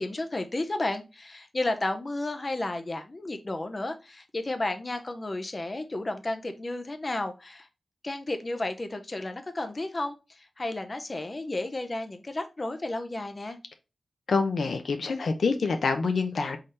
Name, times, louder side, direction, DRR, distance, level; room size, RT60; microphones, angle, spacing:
voice 1, 0.0-7.7 8.0-13.6, left 2 dB, 35° left, 0.5 m, -32 dB
voice 2, 14.3-16.6, left 4 dB, 75° left, 0.7 m, -26 dB
4.2 x 3.8 x 3.2 m
wide cardioid pair, 95°, 0 cm